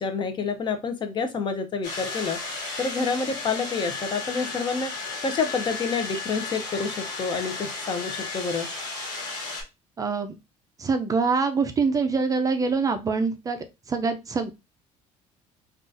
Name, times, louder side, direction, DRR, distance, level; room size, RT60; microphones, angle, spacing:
voice 1, 0.0-2.4 2.8-4.9 5.2-8.7, left 5 dB, 35° left, 7 dB, 0.6 m, -28 dB
sound 1, 1.8-9.6, left 3 dB, 80° left, 1.2 m, -34 dB
voice 2, 10.0-10.3 10.8-13.6 13.9-14.5, right 4 dB, 25° right, 7 dB, 0.4 m, -24 dB
3.8 x 2.4 x 2.5 m, 0.25 s
cardioid pair, 115°, 13 cm